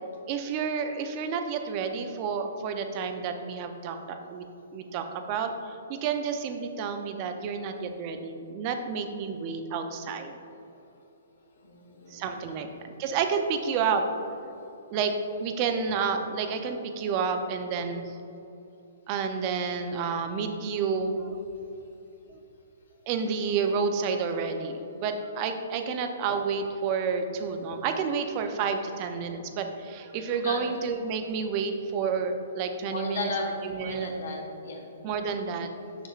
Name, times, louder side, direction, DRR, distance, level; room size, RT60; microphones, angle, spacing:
voice 1, 0.3-4.4 4.7-5.5 5.9-10.4 12.1-12.7 13.0-14.0 14.9-15.1 15.4-18.0 19.1-21.4 23.1-33.3 33.6-34.1 35.0-35.7, right 5 dB, 35° right, 6 dB, 0.5 m, -30 dB
voice 2, 11.6-12.2 30.4-30.6 32.8-34.8, left 2 dB, 75° left, 0 dB, 1.3 m, -34 dB
6.6 x 6.1 x 2.4 m, 2.9 s
hypercardioid pair, 155°, 0 cm